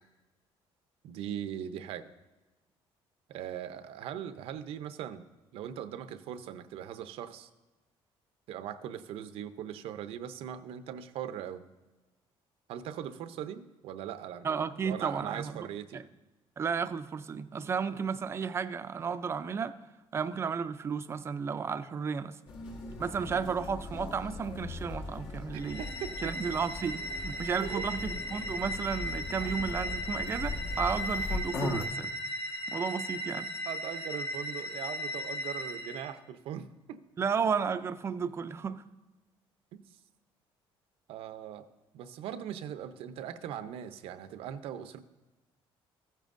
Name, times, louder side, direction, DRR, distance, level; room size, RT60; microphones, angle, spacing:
voice 1, 1.0-2.1 3.3-5.2 5.5-7.5 8.5-11.6 12.7-16.0 25.5-26.1 27.6-27.8 33.7-37.0 39.7-39.8 41.1-41.7 41.9-45.0, right 10 dB, 75° right, 11 dB, 0.6 m, -40 dB
voice 2, 14.4-15.7 15.9-16.0 16.6-19.7 20.1-22.4 23.0-25.8 26.2-32.1 32.7-33.5 37.2-38.8, right 6 dB, 25° right, 12 dB, 0.4 m, -33 dB
sound 1, 22.5-31.8, left 3 dB, 65° left, 1.4 m, -39 dB
sound 2, 25.6-36.1, equal, 35° left, 1.8 m, -37 dB
15.0 x 9.0 x 2.6 m, 1.2 s
cardioid pair, 150°, 10 cm